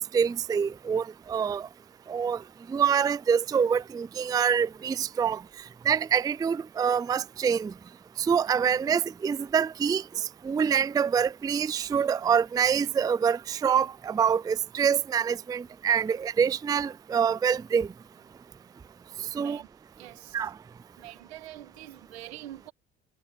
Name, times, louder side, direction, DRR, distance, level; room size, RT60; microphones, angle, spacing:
voice 1, 0.0-1.7 2.1-2.4 2.7-5.4 5.9-7.7 8.2-17.9 19.3-19.6 20.3-20.5, right 7 dB, 15° right, 0.3 m, -26 dB
voice 2, 19.1-19.7 20.0-20.5 21.0-22.7, right 14 dB, 90° right, 2.0 m, -45 dB
hypercardioid pair, 65°, 31 cm